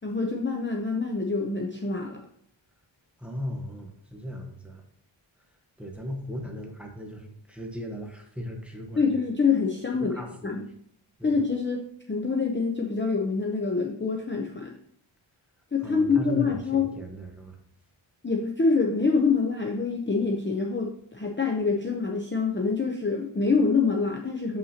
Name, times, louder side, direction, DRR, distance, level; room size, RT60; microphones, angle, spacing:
voice 1, 0.0-2.2 9.0-10.1 10.4-10.6 11.2-11.8 12.1-14.7 15.7-16.9 18.2-24.6, left 4 dB, 25° left, 1 dB, 0.6 m, -26 dB
voice 2, 3.2-4.8 5.8-9.1 10.0-10.5 11.2-11.3 15.8-17.6, equal, 5° right, 1 dB, 1.2 m, -37 dB
7.2 x 5.6 x 2.8 m, 0.69 s
wide cardioid pair, 80°, 47 cm